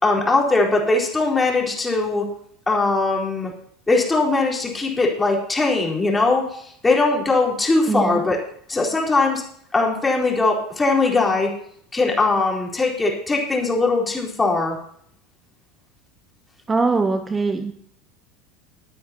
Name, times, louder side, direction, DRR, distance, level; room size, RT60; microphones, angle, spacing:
voice 1, 0.0-2.2 2.7-3.5 3.9-8.4 8.7-9.4 9.7-11.5 11.9-14.8, left 3 dB, 15° left, -2 dB, 4.1 m, -20 dB
voice 2, 7.9-8.3 16.7-17.7, right 4 dB, 20° right, 9 dB, 0.8 m, -22 dB
22.5 x 9.4 x 2.9 m, 0.67 s
hypercardioid pair, 75°, 0 cm